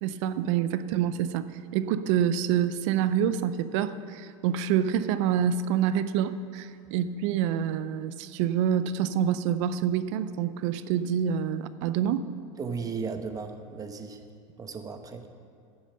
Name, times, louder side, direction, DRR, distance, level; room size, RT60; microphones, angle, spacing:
voice 1, 0.0-1.5 1.7-12.3, right 9 dB, 70° right, 13 dB, 0.6 m, -27 dB
voice 2, 12.6-14.2 14.6-15.3, right 5 dB, 20° right, 7 dB, 0.9 m, -35 dB
11.0 x 7.2 x 6.6 m, 2.4 s
supercardioid pair, 120°, 17 cm